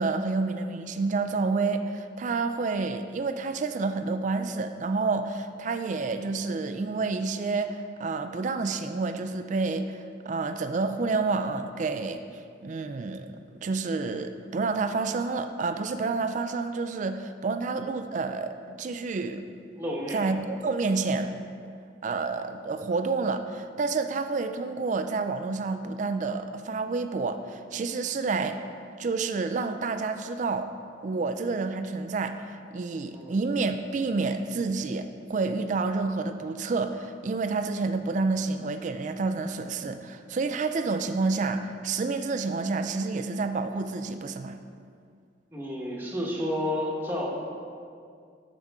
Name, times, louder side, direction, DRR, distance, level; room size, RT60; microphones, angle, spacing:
voice 1, 0.0-12.2 12.6-13.3 13.5-19.5 20.1-21.4 22.0-28.6 29.0-30.7 31.0-44.6, right 3 dB, 40° right, 8 dB, 0.3 m, -29 dB
voice 2, 19.8-20.2 33.1-33.4 45.5-47.3, left 1 dB, 10° right, -3 dB, 1.1 m, -31 dB
12.5 x 5.1 x 3.5 m, 2.3 s
head